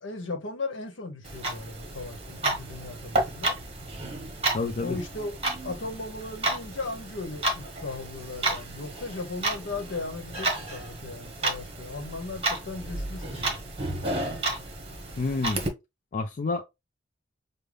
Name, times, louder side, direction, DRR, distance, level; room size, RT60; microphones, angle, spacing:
voice 1, 0.0-3.6 4.8-13.6, left 3 dB, 75° left, 1.0 m, -37 dB
Clock, 1.2-15.7, right 2 dB, 30° right, 1.1 m, -32 dB
voice 2, 4.5-5.0 15.2-15.6 16.1-16.6, left 3 dB, 40° left, 0.4 m, -28 dB
5.2 x 2.1 x 3.3 m
head